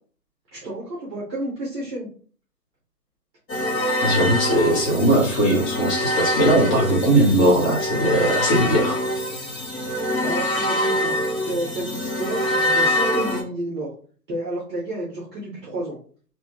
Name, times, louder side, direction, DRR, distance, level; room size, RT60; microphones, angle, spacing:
voice 1, 0.5-2.1 10.2-11.1 11.5-13.9 14.3-16.0, right 1 dB, 15° right, -6 dB, 0.7 m, -30 dB
sound 1, 3.5-13.4, left 1 dB, 90° left, 1.4 m, -24 dB
voice 2, 4.0-9.0, right 1 dB, 30° left, -4 dB, 0.9 m, -19 dB
2.7 x 2.3 x 3.1 m, 0.44 s
figure-of-eight pair, 140°, 49 cm